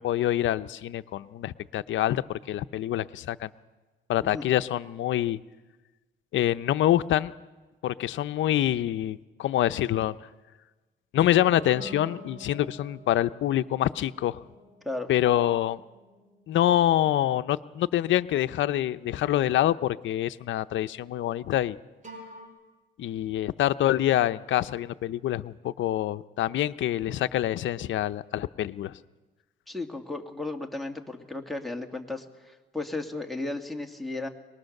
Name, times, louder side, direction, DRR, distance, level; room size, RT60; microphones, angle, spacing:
voice 1, 0.0-3.5 4.1-5.4 6.3-7.3 7.8-10.2 11.1-14.4 15.1-15.8 16.5-21.8 23.0-28.9, left 12 dB, 75° left, 12 dB, 0.7 m, -26 dB
sound 1, 11.6-18.5 22.0-22.5, equal, 40° right, 5.7 m, -48 dB
voice 2, 29.7-34.3, left 2 dB, ahead, 1 dB, 2.1 m, -34 dB
23.0 x 20.0 x 6.6 m, 1.2 s
cardioid pair, 90°, 20 cm